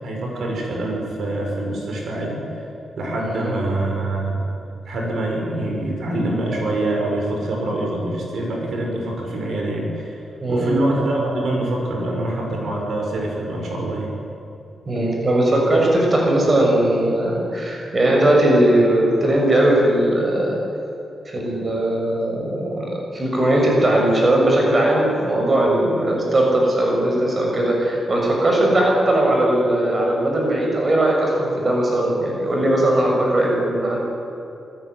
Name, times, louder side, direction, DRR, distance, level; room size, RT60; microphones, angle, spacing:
voice 1, 0.0-2.4 3.0-4.4 4.9-10.2 10.5-14.1, right 1 dB, 60° right, 0 dB, 5.8 m, -25 dB
voice 2, 3.2-3.5 10.4-10.7 14.9-20.6 21.3-34.0, right 1 dB, 25° right, -1 dB, 6.3 m, -19 dB
27.0 x 19.0 x 9.5 m, 2.8 s
wide cardioid pair, 180°, 0 cm